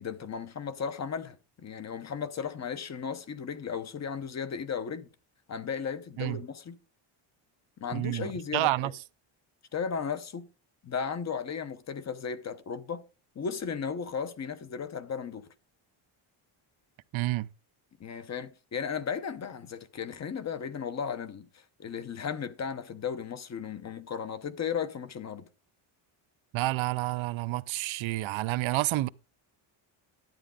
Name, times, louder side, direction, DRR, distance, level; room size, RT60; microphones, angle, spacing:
voice 1, 0.0-5.1 5.5-6.8 7.8-8.9 9.7-10.5 10.8-13.0 13.3-15.5 18.0-25.4, left 6 dB, 35° left, 0.9 m, -35 dB
voice 2, 7.9-8.9 17.1-17.5 26.5-29.1, right 18 dB, 70° right, 0.7 m, -29 dB
12.0 x 9.2 x 3.7 m
cardioid pair, 160°, 50 cm